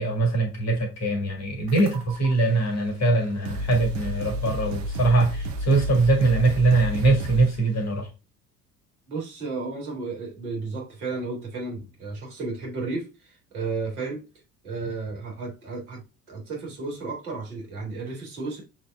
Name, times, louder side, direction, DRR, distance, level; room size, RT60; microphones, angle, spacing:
voice 1, 0.0-8.1, right 2 dB, 35° left, 4 dB, 1.6 m, -22 dB
sound 1, 1.7-2.3 3.1-3.2 3.4-7.7, right 1 dB, 55° right, 0.8 m, -31 dB
voice 2, 9.1-13.1 13.5-14.2 14.6-16.0 16.3-18.6, right 3 dB, 70° right, -2 dB, 2.0 m, -33 dB
6.4 x 2.9 x 2.2 m, 0.29 s
figure-of-eight pair, 60°, 45 cm